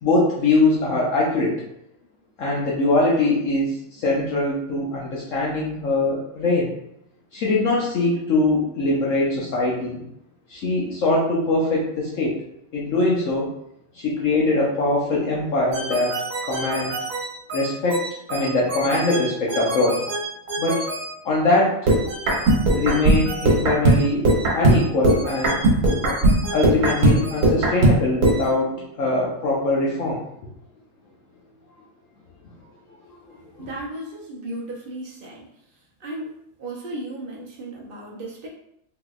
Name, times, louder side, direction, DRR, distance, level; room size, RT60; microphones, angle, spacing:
voice 1, 0.0-1.6 2.4-6.7 7.3-10.0 10.5-12.4 12.7-13.5 13.9-17.0 17.5-18.0 18.3-20.0 20.6-20.9 21.2-21.7 22.8-24.2 24.5-25.6 26.5-30.2 33.1-33.2 33.5-33.7, left 2 dB, 65° left, -5 dB, 1.0 m, -22 dB
sound 1, 15.7-21.1 21.9-28.5, right 2 dB, 80° right, 1.4 m, -21 dB
voice 2, 33.6-35.5 36.0-38.5, right 1 dB, 50° right, -3 dB, 0.7 m, -35 dB
3.7 x 2.8 x 2.4 m, 0.76 s
omnidirectional pair, 1.5 m